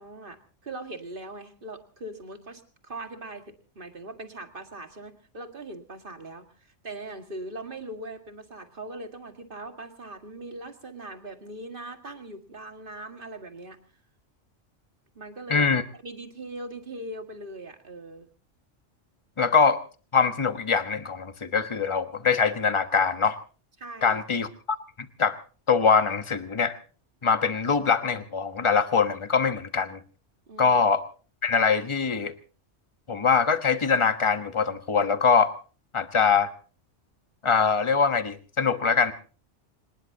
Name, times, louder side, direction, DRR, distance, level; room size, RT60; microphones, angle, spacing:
voice 1, 0.0-13.8 15.2-15.7 16.0-18.3 23.8-24.2 30.5-30.8, right 2 dB, 45° right, 6 dB, 2.2 m, -40 dB
voice 2, 15.5-15.8 19.4-19.8 20.1-23.4 24.0-24.5 25.2-25.4 25.7-26.8 27.2-30.0 30.6-31.0 31.4-32.3 33.1-35.5 35.9-36.5 37.4-39.1, left 5 dB, 25° left, 9 dB, 1.2 m, -23 dB
26.0 x 19.5 x 2.8 m, 0.38 s
omnidirectional pair, 1.3 m